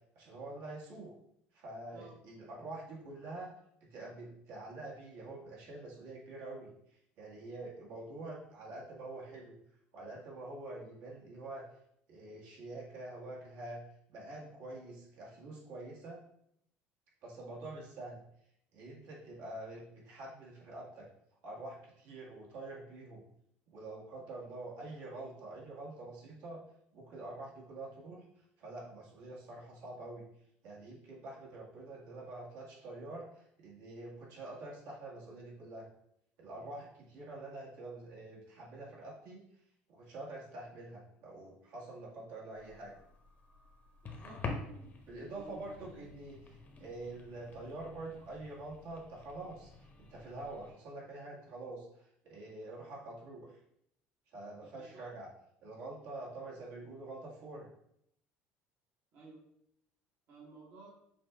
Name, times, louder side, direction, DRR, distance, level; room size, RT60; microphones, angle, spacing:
voice 1, 0.2-1.1 1.5-3.5 3.9-9.5 9.9-11.6 12.1-13.8 14.1-16.2 17.2-18.2 18.7-21.1 21.4-23.2 23.7-26.6 26.9-28.2 28.6-30.2 30.6-35.9 36.4-39.4 39.9-42.9 45.1-46.4 46.8-53.6 54.3-55.3 55.6-57.7, right 2 dB, 70° right, -4 dB, 1.8 m, -46 dB
sound 1, 42.5-50.7, left 3 dB, 35° left, 1.0 m, -48 dB
voice 2, 44.0-44.9 45.4-46.0 54.6-55.0 59.1-59.4 60.3-60.9, right 3 dB, 55° right, -6 dB, 1.4 m, -54 dB
6.1 x 2.4 x 3.4 m, 0.73 s
supercardioid pair, 105°, 5 cm